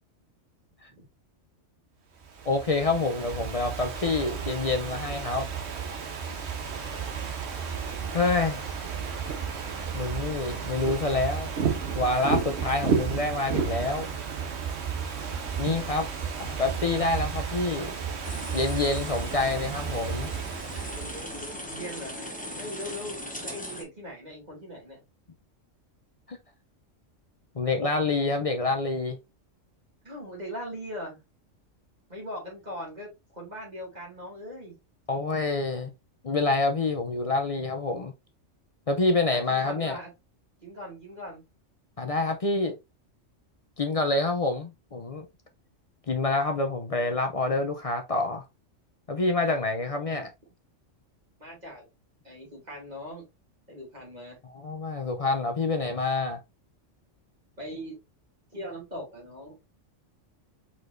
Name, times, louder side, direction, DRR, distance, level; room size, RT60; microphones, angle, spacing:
Ocean / Fireworks, 2.2-21.5, right 6 dB, 60° right, 1.2 m, -32 dB
voice 1, 2.4-5.5 8.1-8.7 9.9-11.5 11.9-14.1 15.6-16.1 16.4-18.0 18.5-20.3 26.3-26.4 27.6-29.2 35.1-35.9 36.2-38.1 38.9-40.0 42.0-42.7 43.8-45.3 46.1-48.4 49.1-50.3 54.5-56.4, left 3 dB, 45° left, 0.5 m, -27 dB
sound 1, 6.7-22.1, right 6 dB, 80° right, 1.4 m, -45 dB
sound 2, 18.2-23.8, left 1 dB, 5° left, 0.9 m, -39 dB
voice 2, 21.6-25.0 30.0-31.2 32.1-34.8 39.3-40.1 40.6-41.4 49.9-50.3 51.4-51.9 52.2-53.2 53.7-54.4 57.6-58.0 58.5-59.6, equal, 35° right, 2.5 m, -40 dB
4.7 x 4.2 x 2.6 m
omnidirectional pair, 1.3 m